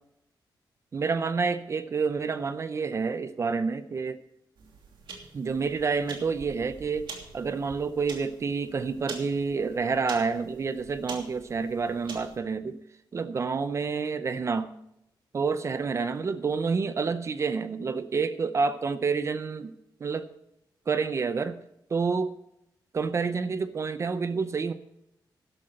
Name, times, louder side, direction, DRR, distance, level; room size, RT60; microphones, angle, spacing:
voice 1, 0.9-4.2 5.3-7.1 7.3-12.8 13.1-14.7 15.3-19.7 20.0-20.3 20.9-21.6 21.9-22.3 22.9-24.7, right 5 dB, 35° right, 12 dB, 0.6 m, -28 dB
sound 1, 4.6-12.4, right 4 dB, 75° right, 2.9 m, -45 dB
13.0 x 11.5 x 4.4 m, 0.83 s
wide cardioid pair, 165°, 8 cm